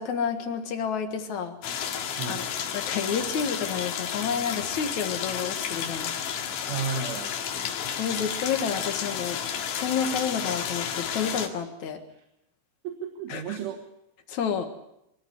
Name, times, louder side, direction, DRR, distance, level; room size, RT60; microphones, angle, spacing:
voice 1, 0.0-1.6 2.3-2.5 2.7-6.1 7.9-9.4 9.7-12.0 13.3-13.6 14.3-14.7, left 7 dB, 55° left, 6 dB, 2.2 m, -30 dB
sound 1, 1.6-11.5, left 8 dB, 80° left, 4.2 m, -32 dB
voice 2, 2.2-2.5 6.7-7.4 12.1-12.2 12.8-13.8, right 6 dB, 80° right, 5 dB, 3.9 m, -33 dB
24.5 x 14.0 x 9.5 m, 0.82 s
omnidirectional pair, 5.4 m